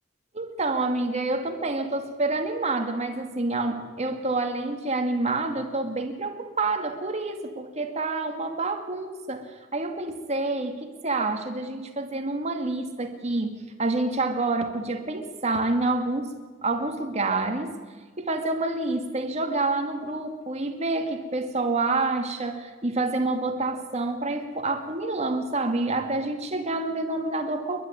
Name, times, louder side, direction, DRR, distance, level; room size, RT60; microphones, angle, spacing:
voice 1, 0.3-17.8 18.2-27.8, right 2 dB, 35° right, 5 dB, 2.2 m, -28 dB
29.0 x 12.0 x 9.8 m, 1.4 s
head